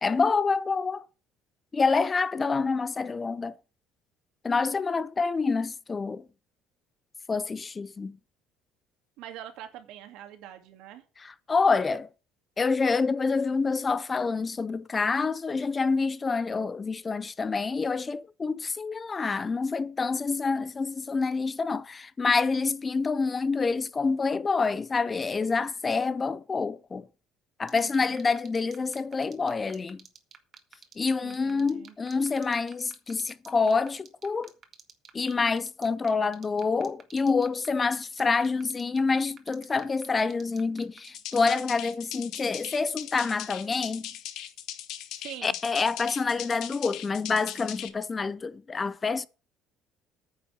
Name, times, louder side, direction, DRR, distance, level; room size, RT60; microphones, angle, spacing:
voice 1, 0.0-1.1 1.7-3.6 4.4-6.2 7.3-8.2 11.2-12.1 12.6-27.1 27.6-30.0 31.0-34.5 35.1-44.1 45.4-49.3, left 4 dB, 20° left, 0.5 m, -27 dB
voice 2, 9.2-11.0 27.7-28.3 31.2-31.9 45.2-45.6, right 11 dB, 75° right, 2.4 m, -44 dB
sound 1, 27.7-41.9, right 7 dB, 40° right, 1.8 m, -49 dB
sound 2, 41.0-47.9, left 12 dB, 65° left, 1.4 m, -39 dB
9.6 x 5.8 x 8.4 m
cardioid pair, 130°, 0 cm